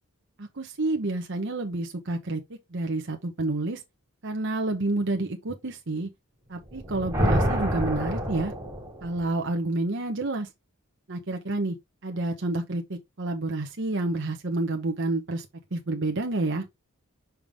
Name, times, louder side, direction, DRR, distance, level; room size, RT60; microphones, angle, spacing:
voice 1, 0.4-3.8 4.2-6.1 6.5-8.5 9.0-10.5 11.1-11.8 12.0-16.7, right 2 dB, 55° right, 1.0 m, -29 dB
sound 1, 6.7-9.3, equal, 15° right, 2.5 m, -27 dB
5.9 x 5.2 x 3.5 m
head